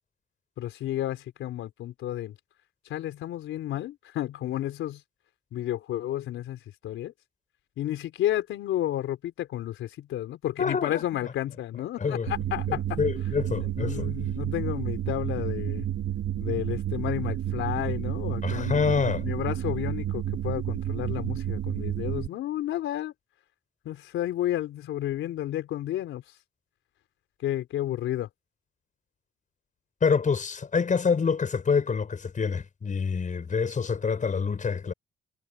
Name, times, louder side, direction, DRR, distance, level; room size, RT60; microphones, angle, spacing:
voice 1, 0.6-2.3 2.9-5.0 5.5-7.1 7.8-13.0 13.8-15.9 16.4-23.1 23.8-26.2 27.4-28.3, left 13 dB, 85° left, 4.4 m, -31 dB
voice 2, 10.6-11.3 12.0-12.3 12.7-14.1 18.4-19.3 30.0-34.9, left 5 dB, 40° left, 6.8 m, -27 dB
sound 1, 12.3-22.3, right 11 dB, 70° right, 2.2 m, -30 dB
cardioid pair, 90°, 20 cm